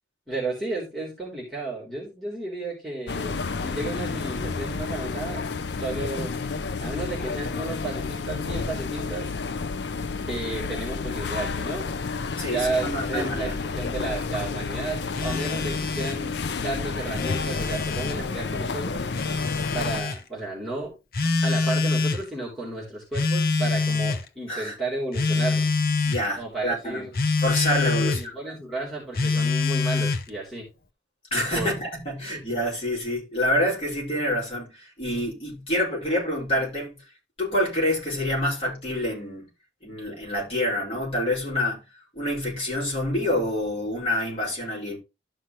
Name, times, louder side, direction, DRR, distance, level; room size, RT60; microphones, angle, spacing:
voice 1, 0.3-5.5 5.8-6.4 6.8-9.3 10.3-11.9 12.5-19.0 19.7-20.9 21.4-25.8 26.4-27.1 28.0-30.7 31.5-31.7, right 2 dB, ahead, 3.7 m, -33 dB
sound 1, 3.1-20.0, left 4 dB, 75° left, 0.5 m, -30 dB
voice 2, 12.4-13.6 24.5-24.7 26.0-27.0 27.4-28.3 31.3-36.9 37.4-39.5 39.8-41.8 42.1-45.0, left 1 dB, 30° left, 5.4 m, -27 dB
Telephone, 15.1-16.2 17.0-18.2 19.1-20.2 21.1-22.2 23.1-24.3 25.1-26.2 27.1-28.2 29.1-30.3, left 4 dB, 55° left, 0.9 m, -25 dB
13.0 x 5.7 x 3.1 m
head